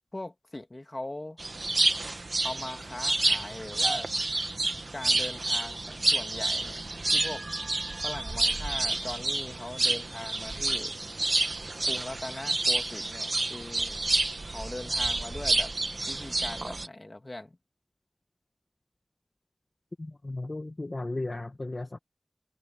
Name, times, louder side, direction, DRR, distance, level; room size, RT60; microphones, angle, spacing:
voice 1, 0.1-1.4 2.4-4.1 4.9-7.5 8.0-10.9 11.8-14.0 14.4-15.7 16.1-17.6, left 1 dB, 50° left, 1.9 m, -40 dB
sound 1, 1.4-16.9, right 2 dB, 85° right, 1.1 m, -29 dB
voice 2, 20.0-22.0, left 2 dB, 70° left, 1.0 m, -35 dB
wide cardioid pair, 40°, 0 cm